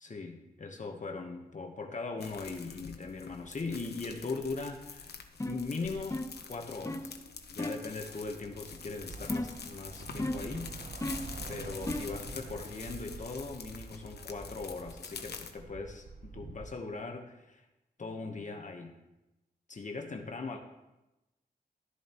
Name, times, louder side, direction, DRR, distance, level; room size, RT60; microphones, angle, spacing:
voice 1, 0.0-7.2 7.5-10.8 11.5-17.6 18.0-19.0 19.7-20.6, left 3 dB, 50° left, 3 dB, 1.1 m, -40 dB
sound 1, 2.2-15.5, left 5 dB, 80° left, 1.0 m, -47 dB
sound 2, 5.4-5.7 6.1-6.4 6.9-7.1 7.6-7.9 9.3-9.7 10.2-10.6 11.0-11.4 11.9-12.2, left 1 dB, 20° left, 0.8 m, -35 dB
Bus / Traffic noise roadway noise, 7.9-16.6, right 4 dB, 55° right, 0.9 m, -47 dB
12.5 x 10.0 x 3.0 m, 0.98 s
cardioid pair, 55°, 17 cm